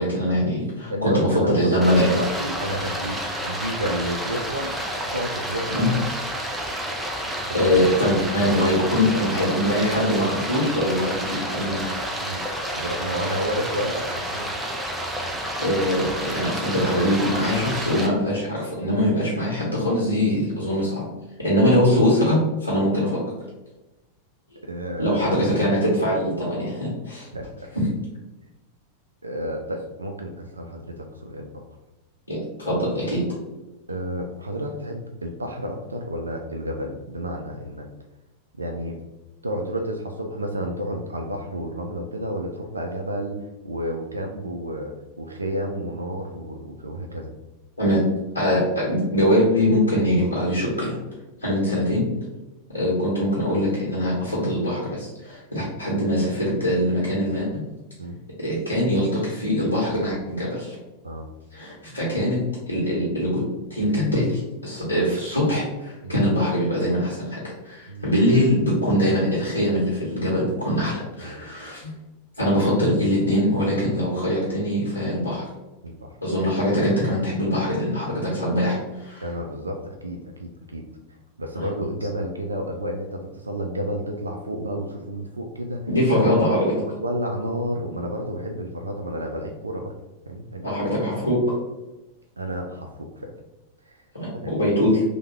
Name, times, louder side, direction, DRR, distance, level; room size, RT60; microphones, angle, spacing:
voice 1, 0.0-2.1 5.7-5.9 7.5-11.8 15.6-21.0 21.4-23.2 25.0-27.3 32.3-33.2 47.8-48.0 48.3-50.9 51.4-52.1 52.7-57.6 58.4-60.8 61.5-62.4 62.7-63.4 63.7-67.4 67.6-71.9 72.4-75.4 76.2-79.2 81.5-81.7 85.9-86.7 90.6-91.4 94.1-95.0, equal, 85° left, -6 dB, 0.9 m, -22 dB
voice 2, 0.9-3.2 3.4-4.8 5.1-5.9 7.5-7.7 8.6-10.4 12.2-12.4 12.7-14.5 24.6-25.2 27.3-27.7 29.2-31.6 33.9-37.9 38.5-39.0 39.4-47.3 55.5-55.6 58.0-58.2 61.0-61.3 64.8-64.9 66.0-66.2 67.9-68.1 70.7-70.8 71.2-71.4 75.8-76.2 79.2-80.8 81.4-85.9 86.8-89.9 90.3-90.6 92.4-93.3 93.8-94.0 94.3-94.5, equal, 80° right, 3 dB, 0.3 m, -31 dB
Stream, 1.8-18.1, equal, 10° right, 0.5 m, -30 dB
3.2 x 2.2 x 3.1 m, 1.0 s
figure-of-eight pair, 90°, 0 cm